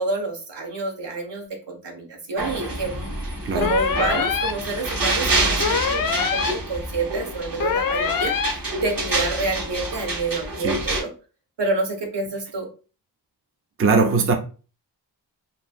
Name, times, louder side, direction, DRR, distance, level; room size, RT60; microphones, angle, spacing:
voice 1, 0.0-3.1 3.5-6.2 6.5-11.1 11.6-12.7, right 3 dB, 70° right, 0.9 m, -28 dB
sound 1, 2.4-11.0, right 2 dB, 50° right, 1.0 m, -27 dB
voice 2, 3.4-3.8 10.6-10.9 13.8-14.3, right 4 dB, 30° right, 0.5 m, -20 dB
sound 2, 3.6-4.5 5.6-6.5 7.6-8.5, left 6 dB, 50° left, 0.4 m, -24 dB
2.9 x 2.5 x 2.3 m
cardioid pair, 50°, 43 cm